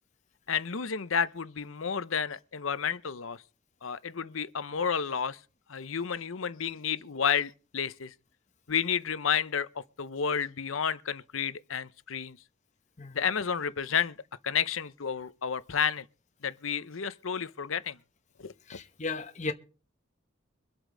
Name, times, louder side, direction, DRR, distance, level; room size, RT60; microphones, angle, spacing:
voice 1, 0.5-3.4 3.8-5.4 5.7-8.1 8.7-12.4 13.1-14.2 14.4-16.1 16.4-18.0 18.4-18.5, left 7 dB, 75° left, 0.8 m, -31 dB
voice 2, 18.7-19.5, left 3 dB, 35° left, 0.9 m, -35 dB
24.0 x 8.1 x 3.9 m
head